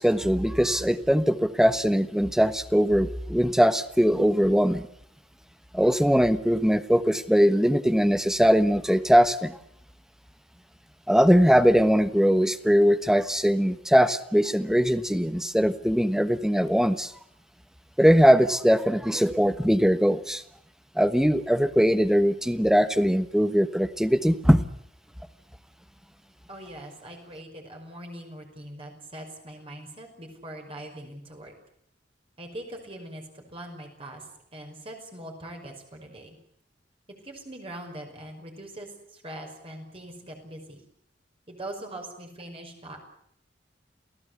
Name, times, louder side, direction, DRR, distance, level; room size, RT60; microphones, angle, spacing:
voice 1, 0.0-4.9 5.7-9.6 11.1-17.1 18.0-20.4 20.9-24.7, equal, 5° right, 12 dB, 1.2 m, -21 dB
voice 2, 26.5-31.5 32.4-36.4 37.2-40.8 41.5-43.0, right 1 dB, 30° right, 2 dB, 5.7 m, -42 dB
28.5 x 17.5 x 8.3 m, 0.72 s
head